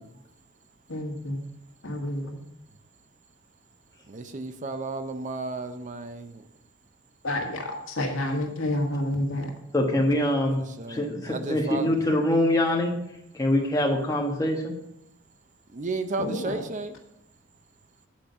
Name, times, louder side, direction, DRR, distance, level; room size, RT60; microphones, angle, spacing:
voice 1, 0.9-1.4 1.8-2.4 7.2-9.5 16.2-16.6, left 1 dB, 75° left, 1 dB, 1.7 m, -29 dB
voice 2, 4.1-6.4 10.8-12.0 15.7-16.9, right 3 dB, 40° right, 9 dB, 0.6 m, -33 dB
voice 3, 9.7-10.6 10.9-12.9 13.4-14.7, left 1 dB, 15° left, -1 dB, 1.4 m, -24 dB
8.6 x 5.1 x 6.7 m, 0.80 s
head